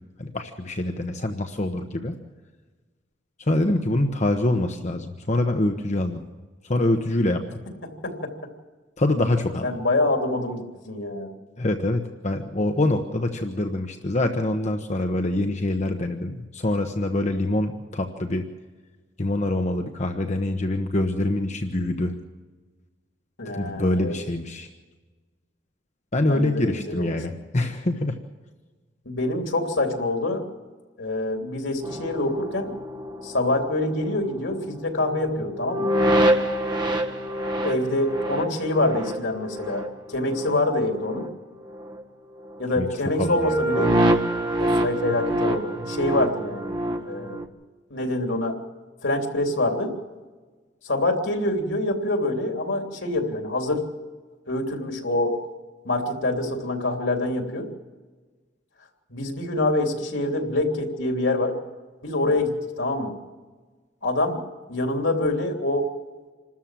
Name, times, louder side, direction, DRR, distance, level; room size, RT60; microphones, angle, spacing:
voice 1, 0.2-2.2 3.4-6.2 6.6-7.6 9.0-9.7 11.6-18.4 19.2-22.1 23.5-24.7 26.1-28.2 42.8-42.9 43.2-43.6, left 1 dB, 40° left, 5 dB, 1.1 m, -25 dB
voice 2, 9.6-11.3 23.4-24.2 26.2-27.2 29.0-30.4 31.0-32.7 33.2-35.9 37.6-41.3 42.6-43.9 44.6-47.4 47.9-48.6 49.0-49.9 50.8-53.9 54.5-55.4 55.8-57.7 59.1-61.6 62.0-63.1 64.0-64.4 64.7-65.9, left 2 dB, 90° left, 3 dB, 3.1 m, -25 dB
sound 1, 31.8-41.3 41.6-42.0 42.4-42.7 43.1-47.4, right 1 dB, 25° right, 1.5 m, -26 dB
27.0 x 13.5 x 7.5 m, 1.3 s
head